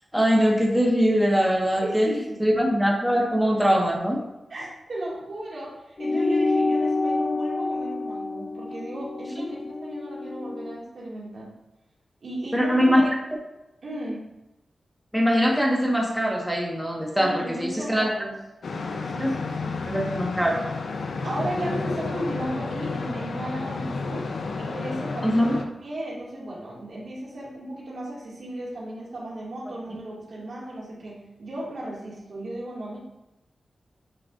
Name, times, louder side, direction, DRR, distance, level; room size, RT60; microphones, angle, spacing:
voice 1, 0.1-2.1 2.4-4.2 12.5-13.0 15.1-18.1 19.2-19.3 19.8-20.6 25.2-25.6, equal, ahead, -2 dB, 1.4 m, -22 dB
voice 2, 1.8-2.4 4.5-11.5 12.2-12.9 13.8-14.2 17.2-18.4 19.0-19.8 21.2-24.3 24.6-25.5 25.8-33.0, right 1 dB, 70° right, -5 dB, 2.1 m, -35 dB
sound 1, 6.0-10.8, left 3 dB, 40° left, 0.3 m, -27 dB
sound 2, 18.6-25.6, left 4 dB, 75° left, 0.6 m, -31 dB
8.9 x 4.6 x 2.6 m, 0.94 s
cardioid pair, 65°, 0 cm